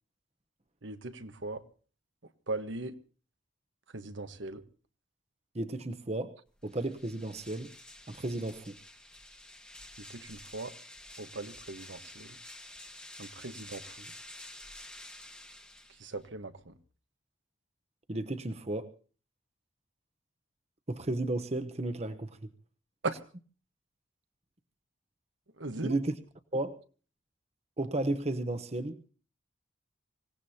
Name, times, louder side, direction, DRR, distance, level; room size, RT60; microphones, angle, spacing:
voice 1, 0.8-1.6 2.5-2.9 3.9-4.6 10.1-10.7 11.2-12.3 13.2-13.9 16.0-16.7 23.0-23.1 25.6-25.9, right 2 dB, 75° right, 1.2 m, -38 dB
voice 2, 5.5-6.4 6.6-7.7 8.1-8.8 18.1-18.9 20.9-22.3 25.8-26.2 26.5-26.8 27.8-29.0, right 2 dB, 35° right, 0.9 m, -33 dB
sound 1, 6.6-16.3, left 1 dB, 5° left, 1.3 m, -50 dB
25.5 x 17.0 x 2.8 m
head